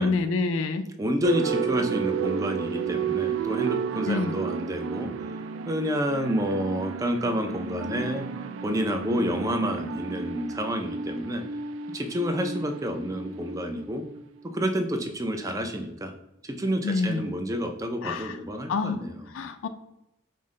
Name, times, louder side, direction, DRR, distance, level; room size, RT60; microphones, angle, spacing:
voice 1, 0.0-0.9 4.1-4.4 16.8-17.2 18.0-18.4 18.7-19.0 19.3-19.7, left 4 dB, 85° left, 9 dB, 0.4 m, -27 dB
voice 2, 1.0-5.1 5.7-8.3 8.6-11.4 11.9-14.0 14.5-16.1 16.4-19.3, equal, 15° right, 5 dB, 0.4 m, -29 dB
sound 1, 1.2-14.6, right 6 dB, 85° right, 0.3 m, -32 dB
5.4 x 2.1 x 3.7 m, 0.86 s
head